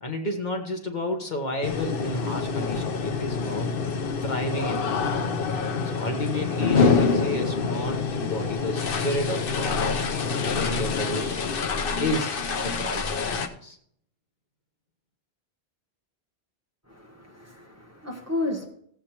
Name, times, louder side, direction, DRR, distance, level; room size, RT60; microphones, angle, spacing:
voice 1, 0.0-3.7 4.2-4.9 5.8-10.1 10.5-11.4 12.0-12.3 12.6-13.8, left 1 dB, 45° left, 3 dB, 1.3 m, -31 dB
sound 1, 1.6-13.5, left 5 dB, 60° left, 0.9 m, -26 dB
voice 2, 16.9-18.7, left 2 dB, 15° right, 0 dB, 1.3 m, -32 dB
15.0 x 8.1 x 2.9 m, 0.66 s
omnidirectional pair, 1.1 m